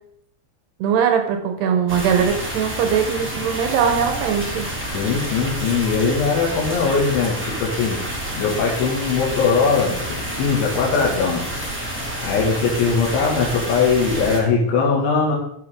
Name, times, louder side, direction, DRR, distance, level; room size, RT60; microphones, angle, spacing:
voice 1, 0.8-4.7, right 7 dB, 70° right, 5 dB, 3.0 m, -20 dB
sound 1, 1.9-14.4, equal, 5° right, 1.0 m, -29 dB
voice 2, 4.9-8.0 8.4-11.4 12.2-15.4, left 5 dB, 90° left, -3 dB, 4.4 m, -20 dB
13.0 x 7.6 x 3.8 m, 0.69 s
omnidirectional pair, 5.2 m